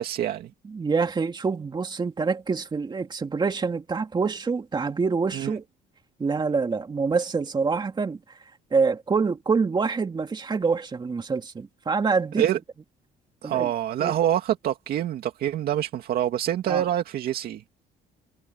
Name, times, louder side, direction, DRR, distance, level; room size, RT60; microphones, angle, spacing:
voice 1, 0.0-0.5 5.3-5.5 12.4-12.6 13.4-17.6, right 11 dB, 65° right, 2.3 m, -26 dB
voice 2, 0.7-5.6 6.2-8.2 8.7-12.4 13.4-13.7 14.0-14.2 16.7-16.8, right 4 dB, 25° right, 2.5 m, -26 dB
cardioid pair, 110°, 17 cm